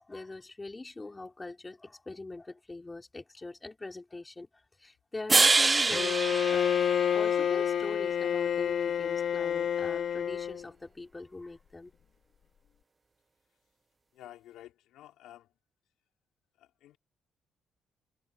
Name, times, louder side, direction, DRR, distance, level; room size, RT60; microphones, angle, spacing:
voice 1, 0.0-6.7 7.1-11.9, left 2 dB, 20° left, 3.8 m, -43 dB
sound 1, 5.3-7.6, right 3 dB, 25° right, 1.2 m, -26 dB
Bowed string instrument, 5.9-10.7, left 8 dB, 65° left, 2.7 m, -29 dB
voice 2, 14.1-15.5 16.6-17.0, left 13 dB, 90° left, 3.7 m, -51 dB
cardioid pair, 90°, 0 cm